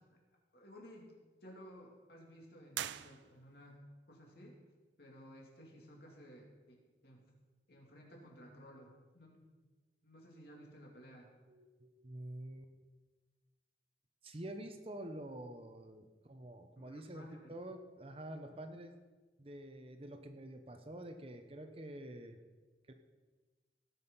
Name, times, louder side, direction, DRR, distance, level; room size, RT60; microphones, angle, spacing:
voice 1, 0.5-1.2 1.4-3.8 4.1-4.6 5.0-7.2 7.7-9.5 10.0-11.3 16.8-17.5, equal, 60° left, -1 dB, 2.9 m, -56 dB
sound 1, 2.7-3.8, right 11 dB, 85° right, 0.4 m, -43 dB
voice 2, 11.5-12.7 14.2-18.9 19.4-22.4 22.9-23.0, right 1 dB, 30° right, 7 dB, 0.9 m, -48 dB
17.5 x 6.4 x 5.6 m, 1.3 s
head